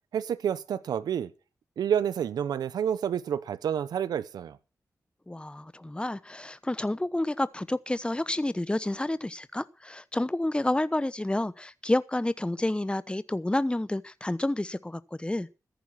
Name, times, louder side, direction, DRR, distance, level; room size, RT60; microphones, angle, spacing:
voice 1, 0.1-1.3 1.8-4.6, right 8 dB, 90° right, 0.9 m, -29 dB
voice 2, 5.3-15.5, left 1 dB, 15° left, 1.0 m, -29 dB
14.5 x 10.5 x 5.8 m
supercardioid pair, 40°, 7 cm